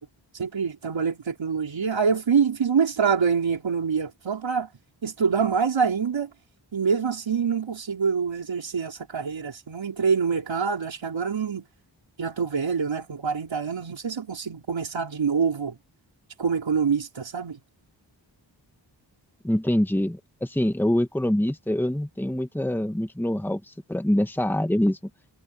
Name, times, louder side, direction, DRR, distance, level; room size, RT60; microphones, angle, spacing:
voice 1, 0.4-4.7 5.0-6.3 6.7-11.6 12.2-15.8 16.4-17.6, right 6 dB, 85° right, 4.2 m, -25 dB
voice 2, 19.4-25.0, left 1 dB, 5° left, 1.6 m, -25 dB
wide cardioid pair, 100°, 44 cm